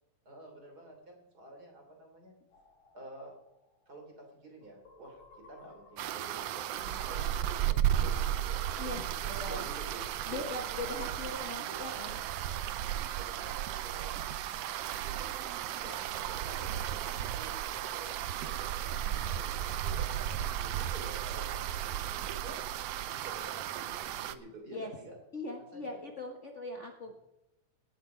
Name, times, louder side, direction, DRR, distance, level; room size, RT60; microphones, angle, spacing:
voice 1, 0.3-2.4 2.9-3.3 3.9-9.0 9.2-10.0 10.3-10.6 10.9-11.9 12.4-12.6 13.1-14.1 14.6-15.3 15.8-22.6 22.9-25.2 25.6-26.0, right 2 dB, 30° right, 2 dB, 3.5 m, -50 dB
sound 1, 2.5-13.1 15.1-22.0, left 4 dB, 65° left, 4.1 m, -57 dB
sound 2, 6.0-24.4, right 11 dB, 80° right, 1.4 m, -34 dB
voice 2, 8.8-9.7 10.3-12.2 19.1-19.4 24.7-24.9 25.3-27.1, left 2 dB, 85° left, 2 dB, 0.6 m, -40 dB
17.5 x 7.9 x 5.7 m, 0.89 s
omnidirectional pair, 3.6 m